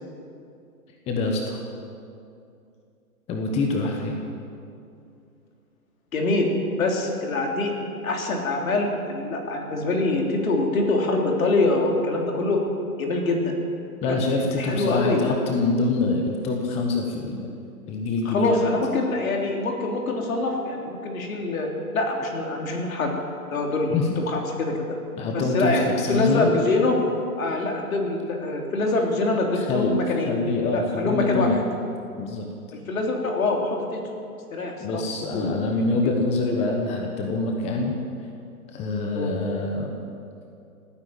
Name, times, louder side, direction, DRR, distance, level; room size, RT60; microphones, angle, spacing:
voice 1, 1.1-1.6 3.3-4.2 14.0-17.5 17.9-18.7 23.9-24.1 25.2-26.5 29.5-29.9 30.3-31.6 32.2-32.5 34.8-37.9 38.7-40.0, left 3 dB, 15° left, 2 dB, 1.1 m, -25 dB
voice 2, 6.1-6.5 6.8-7.7 8.0-12.6 13.0-13.5 14.1-14.2 14.6-15.2 18.3-21.7 21.9-23.1 23.5-24.0 24.2-24.7 25.3-27.0 27.4-30.3 30.7-31.6 32.9-34.0 34.5-35.0 35.3-35.5 39.1-39.3, left 2 dB, 65° left, 1 dB, 3.4 m, -24 dB
17.0 x 9.7 x 8.7 m, 2.5 s
hypercardioid pair, 145°, 45 cm